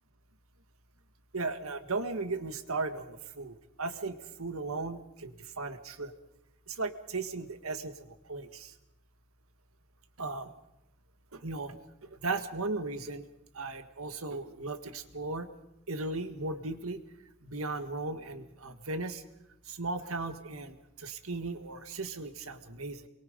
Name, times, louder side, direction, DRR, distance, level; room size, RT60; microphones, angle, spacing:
voice 1, 1.3-6.1 6.7-8.7 10.2-10.5 11.3-13.3 13.5-15.5 15.9-17.0 17.4-19.2 19.7-23.1, right 3 dB, 90° right, 8 dB, 1.8 m, -37 dB
29.0 x 23.0 x 5.2 m, 0.85 s
head